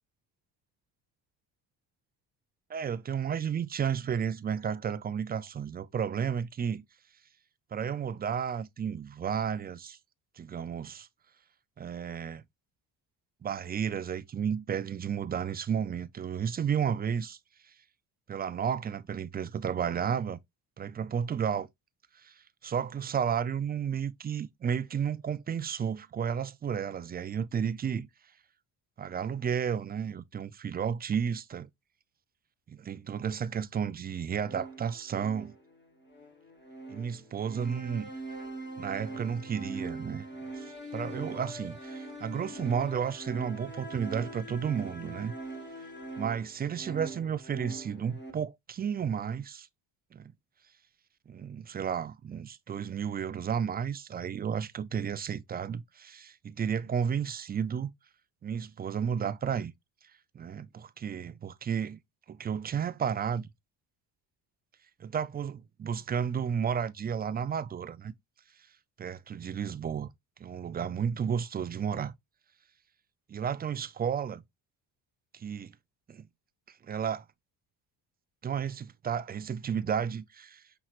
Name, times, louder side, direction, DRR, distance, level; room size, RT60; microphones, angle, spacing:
voice 1, 2.7-6.8 7.7-10.0 10.4-11.1 11.8-12.4 13.4-17.4 18.3-20.4 20.8-21.7 22.2-28.1 29.0-31.7 32.7-35.5 36.9-38.1 38.8-40.3 40.5-45.3 46.2-49.7 50.1-50.3 51.3-57.9 58.4-59.7 60.3-62.0 62.3-63.5 65.0-68.1 69.0-70.1 70.4-72.1 73.3-74.4 75.3-75.7 76.1-76.3 76.8-77.2 78.4-80.6, right 7 dB, 25° right, 0.3 m, -32 dB
sound 1, 34.4-48.3, right 2 dB, 25° left, 1.4 m, -42 dB
5.7 x 3.0 x 2.4 m
supercardioid pair, 75°, 45 cm